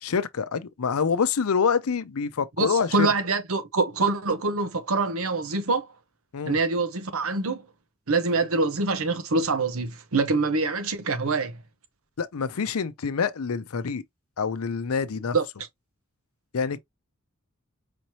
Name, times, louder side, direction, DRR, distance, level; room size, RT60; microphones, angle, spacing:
voice 1, 0.0-3.1 6.3-6.6 12.2-14.0 14.4-15.4 16.5-16.8, left 5 dB, 80° left, 0.6 m, -26 dB
voice 2, 2.6-5.9 6.4-7.6 8.1-11.6 15.3-15.5, right 3 dB, 75° right, 0.9 m, -25 dB
5.1 x 2.8 x 3.0 m
head